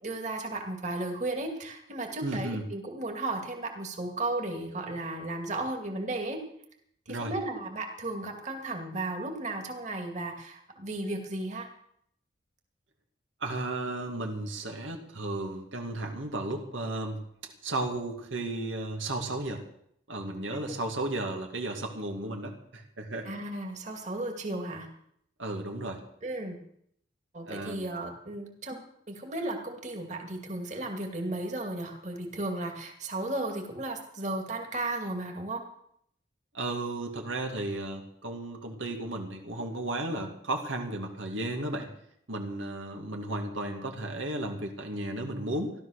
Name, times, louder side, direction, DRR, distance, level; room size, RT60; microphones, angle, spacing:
voice 1, 0.0-6.4 7.1-11.7 23.2-24.9 26.2-26.6 27.3-28.8 29.1-35.6, right 2 dB, 40° right, 2 dB, 2.5 m, -34 dB
voice 2, 2.2-2.6 7.1-7.3 13.4-19.6 20.1-23.3 25.4-26.0 27.5-27.9 36.5-41.9 42.3-45.7, right 2 dB, 90° right, 2 dB, 2.4 m, -34 dB
16.0 x 12.5 x 6.6 m, 0.71 s
head